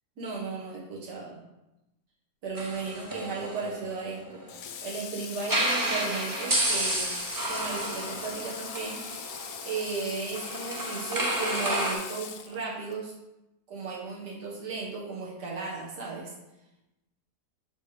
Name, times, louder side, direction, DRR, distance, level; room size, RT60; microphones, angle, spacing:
voice 1, 0.2-1.4 2.4-4.4 4.8-7.1 7.5-9.0 9.6-13.1 13.7-16.3, right 4 dB, 85° right, -4 dB, 2.1 m, -35 dB
sound 1, 2.6-4.6 5.4-11.9, right 1 dB, 25° right, 0.4 m, -31 dB
Water / Water tap faucet, 4.5-13.0, left 8 dB, 70° left, 1.0 m, -41 dB
7.5 x 3.3 x 5.0 m, 0.94 s
omnidirectional pair, 1.7 m